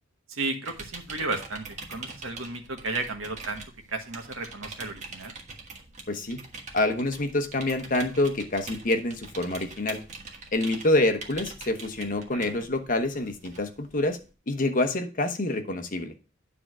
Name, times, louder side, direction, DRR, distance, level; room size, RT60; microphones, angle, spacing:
voice 1, 0.3-3.6 3.9-5.3 12.3-12.6, right 3 dB, 85° right, 4 dB, 1.4 m, -33 dB
sound 1, 0.7-14.3, right 3 dB, 35° right, 1.4 m, -44 dB
voice 2, 6.1-6.4 6.7-10.0 10.5-14.2 14.5-16.1, left 2 dB, 45° left, 7 dB, 1.0 m, -26 dB
9.7 x 3.7 x 6.1 m, 0.33 s
head